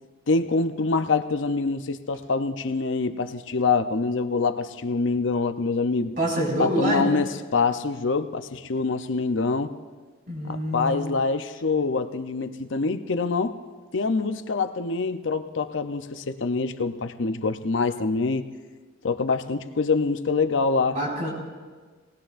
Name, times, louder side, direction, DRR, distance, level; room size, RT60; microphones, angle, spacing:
voice 1, 0.3-6.1 6.6-9.7 10.5-13.6 13.9-18.5 19.0-21.0, left 4 dB, 75° left, 9 dB, 0.7 m, -25 dB
voice 2, 6.2-7.0 10.3-11.1 20.9-21.3, equal, 45° right, -4 dB, 5.1 m, -26 dB
19.0 x 19.0 x 2.6 m, 1.4 s
head